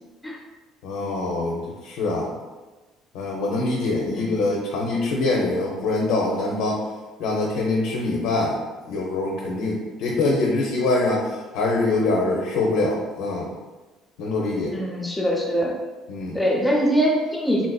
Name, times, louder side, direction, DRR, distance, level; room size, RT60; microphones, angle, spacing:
voice 1, 0.8-2.3 3.1-6.8 7.2-8.6 8.9-13.5 14.2-14.8 16.1-16.4, left 2 dB, 85° left, -2 dB, 0.5 m, -24 dB
voice 2, 14.7-15.7 16.3-17.7, equal, 5° left, -1 dB, 0.6 m, -23 dB
3.6 x 2.5 x 2.3 m, 1.2 s
cardioid pair, 130°, 0 cm